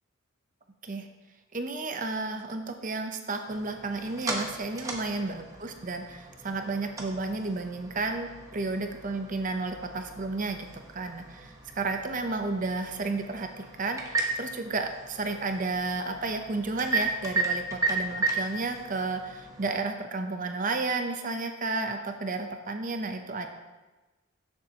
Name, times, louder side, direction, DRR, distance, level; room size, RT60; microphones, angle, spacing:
voice 1, 1.5-23.5, right 3 dB, 40° right, 5 dB, 0.7 m, -32 dB
sound 1, 3.5-19.8, right 3 dB, 15° right, 1.0 m, -35 dB
13.5 x 7.0 x 2.9 m, 1.2 s
head